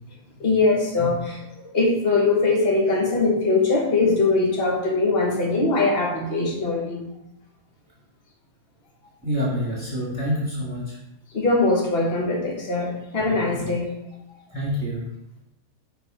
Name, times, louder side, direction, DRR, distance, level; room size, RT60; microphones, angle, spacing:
voice 1, 0.4-7.0 11.3-13.9, left 3 dB, 40° left, -2 dB, 1.4 m, -21 dB
voice 2, 9.2-11.0 13.5-13.6 14.5-15.0, equal, 5° right, -7 dB, 1.6 m, -27 dB
6.1 x 3.3 x 4.9 m, 0.87 s
omnidirectional pair, 1.7 m